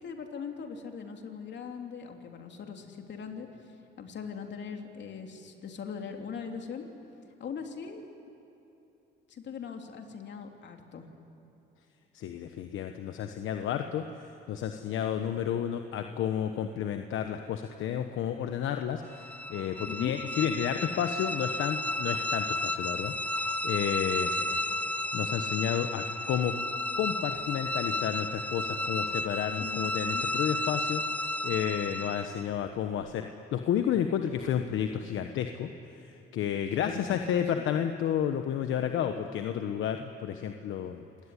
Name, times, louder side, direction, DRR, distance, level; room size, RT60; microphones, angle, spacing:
voice 1, 0.0-3.5 4.0-6.9 7.4-8.4 9.3-11.1 19.8-20.1 24.3-24.6 29.6-30.2 36.6-37.2 37.6-37.7, left 6 dB, 65° left, 3 dB, 3.0 m, -40 dB
voice 2, 12.1-14.0 14.5-24.3 25.1-26.5 27.0-31.0 31.4-35.7 36.0-41.1, left 9 dB, 80° left, 6 dB, 1.1 m, -31 dB
sound 1, 19.1-32.5, left 1 dB, 5° left, 0.9 m, -32 dB
27.5 x 18.5 x 9.9 m, 2.9 s
cardioid pair, 90°, 20 cm